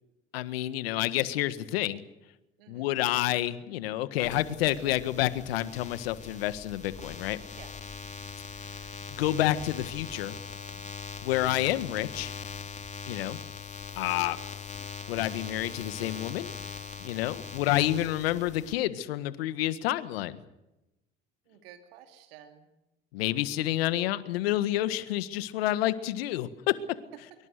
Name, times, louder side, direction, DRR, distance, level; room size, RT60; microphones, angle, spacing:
voice 1, 0.3-2.0 2.7-7.4 9.1-10.4 11.2-12.3 13.1-13.4 13.9-14.4 15.1-16.5 17.0-20.4 23.1-26.7, left 14 dB, 80° left, 13 dB, 1.7 m, -29 dB
voice 2, 2.6-2.9 7.5-7.7 18.4-18.5 21.5-22.7, right 10 dB, 80° right, 6 dB, 2.8 m, -53 dB
sound 1, 4.2-18.7, left 5 dB, 25° left, 3.3 m, -41 dB
25.0 x 23.5 x 6.7 m, 0.93 s
hypercardioid pair, 70°, 29 cm